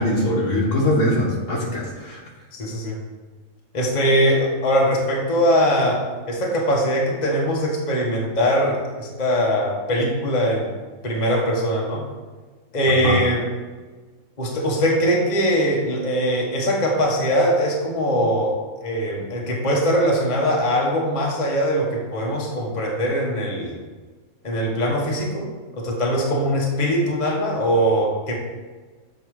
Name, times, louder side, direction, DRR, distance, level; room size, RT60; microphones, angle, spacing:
voice 1, 0.0-2.2 13.0-13.2, left 1 dB, 60° left, -2 dB, 1.6 m, -22 dB
voice 2, 2.5-3.0 3.7-10.7 11.0-12.0 12.7-13.4 14.4-18.5 18.8-23.7 24.4-25.5 25.7-28.3, equal, 30° left, -2 dB, 1.2 m, -21 dB
7.3 x 4.8 x 4.8 m, 1.4 s
omnidirectional pair, 1.5 m